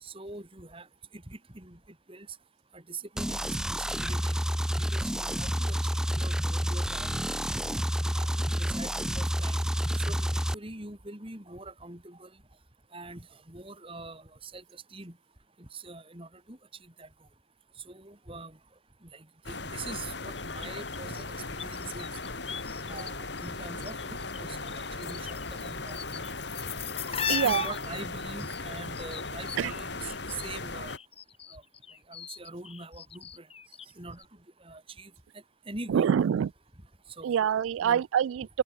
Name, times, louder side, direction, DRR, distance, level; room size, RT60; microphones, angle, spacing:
voice 1, 0.0-0.9 1.1-1.8 2.1-2.3 2.7-4.4 4.7-7.6 8.0-9.6 10.0-12.3 12.9-15.1 15.6-16.6 17.0-17.1 17.9-18.6 19.0-22.1 22.9-26.2 27.3-31.0 31.5-31.6 32.1-33.5 34.0-34.2 34.6-35.1 35.7-36.1 37.2-37.4 37.8-38.0, right 3 dB, 25° right, 3.7 m, -44 dB
sound 1, 3.2-10.5, equal, 5° right, 1.2 m, -29 dB
sound 2, 19.4-31.0, left 3 dB, 60° left, 2.8 m, -38 dB
sound 3, 20.4-23.1 23.4-24.4 24.6-30.6 30.9-33.9 34.2-34.3, left 7 dB, 30° left, 1.3 m, -38 dB
voice 2, 27.3-27.7 29.6-29.7 35.9-36.5 37.2-38.6, right 8 dB, 85° right, 0.3 m, -25 dB
open air
head